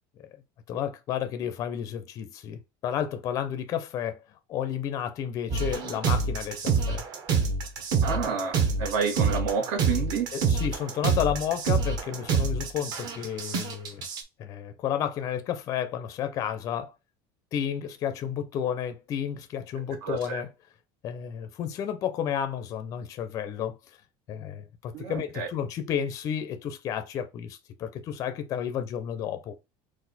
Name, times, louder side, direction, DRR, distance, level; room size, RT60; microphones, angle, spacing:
voice 1, 0.7-4.2 4.5-7.0 10.3-14.0 14.4-16.9 17.5-20.5 21.0-24.0 24.3-29.5, left 9 dB, 30° left, 0.4 m, -32 dB
sound 1, 5.5-14.2, right 5 dB, 35° right, 0.8 m, -27 dB
voice 2, 8.0-10.3 20.0-20.4 24.9-25.5, right 6 dB, 75° right, 1.5 m, -29 dB
4.1 x 2.4 x 4.0 m
cardioid pair, 175°, 12 cm